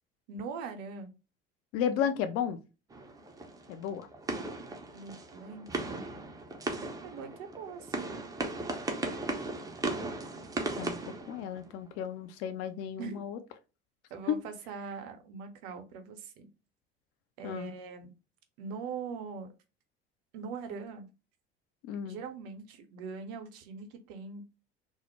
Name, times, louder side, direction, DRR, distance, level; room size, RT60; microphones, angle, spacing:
voice 1, 0.3-1.1 2.0-2.1 4.9-6.0 7.0-8.1 13.0-13.2 14.1-16.5 17.4-18.1 18.6-19.5 20.3-21.1 22.0-24.4, right 5 dB, 55° right, 0.6 m, -42 dB
voice 2, 1.7-2.6 3.7-4.1 10.8-11.0 11.3-13.4 14.3-14.4 17.4-17.7 21.8-22.2, left 8 dB, 45° left, 0.5 m, -33 dB
sound 1, 2.9-12.0, right 2 dB, 10° right, 0.4 m, -37 dB
2.2 x 2.0 x 2.9 m
figure-of-eight pair, 65°, 33 cm